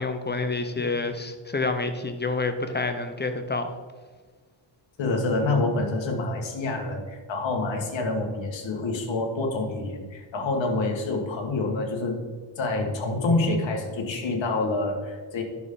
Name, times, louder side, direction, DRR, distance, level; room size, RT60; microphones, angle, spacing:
voice 1, 0.0-3.7, left 3 dB, 20° left, 8 dB, 0.6 m, -28 dB
voice 2, 5.0-12.2 12.6-15.4, left 2 dB, 65° left, 2 dB, 1.9 m, -27 dB
10.5 x 6.4 x 3.9 m, 1.4 s
cardioid pair, 135°, 48 cm